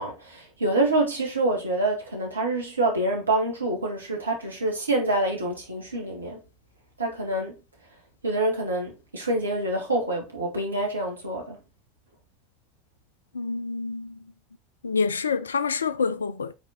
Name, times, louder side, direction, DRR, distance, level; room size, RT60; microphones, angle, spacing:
voice 1, 0.0-6.4 7.0-7.5 8.2-11.6, right 2 dB, 85° right, 1.8 m, -26 dB
voice 2, 13.3-14.3 14.8-16.5, left 5 dB, 80° left, 0.4 m, -27 dB
5.7 x 4.4 x 4.2 m
figure-of-eight pair, 75°, 0 cm